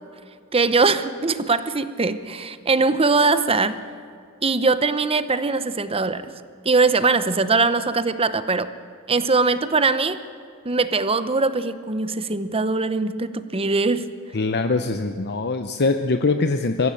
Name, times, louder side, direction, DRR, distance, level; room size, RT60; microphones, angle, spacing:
voice 1, 0.5-3.8 4.4-6.3 6.6-8.7 9.1-10.2 10.6-14.1, right 3 dB, 25° right, 13 dB, 0.8 m, -21 dB
voice 2, 14.3-16.9, left 3 dB, 50° left, 7 dB, 0.8 m, -22 dB
22.0 x 15.5 x 9.0 m, 2.3 s
head